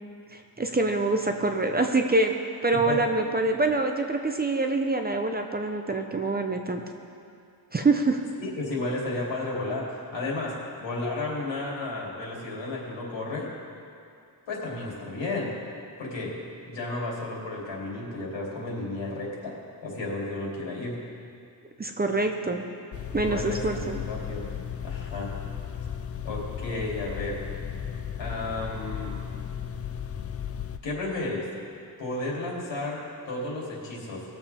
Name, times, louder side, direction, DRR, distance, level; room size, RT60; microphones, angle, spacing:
voice 1, 0.3-2.3 2.6-6.8 7.7-8.2 21.8-22.7 23.1-24.0, right 2 dB, 20° right, 4 dB, 0.6 m, -25 dB
voice 2, 2.7-3.0 8.4-13.5 14.5-15.5 16.0-16.4 16.7-19.6 19.8-21.0 23.2-24.4 24.8-25.3 26.2-27.4 28.2-29.2 30.8-31.5 32.0-34.2, left 2 dB, 80° left, -4 dB, 2.9 m, -33 dB
sound 1, 22.9-30.8, left 8 dB, 35° left, 0.4 m, -35 dB
19.5 x 7.1 x 3.4 m, 2.5 s
wide cardioid pair, 135°, 44 cm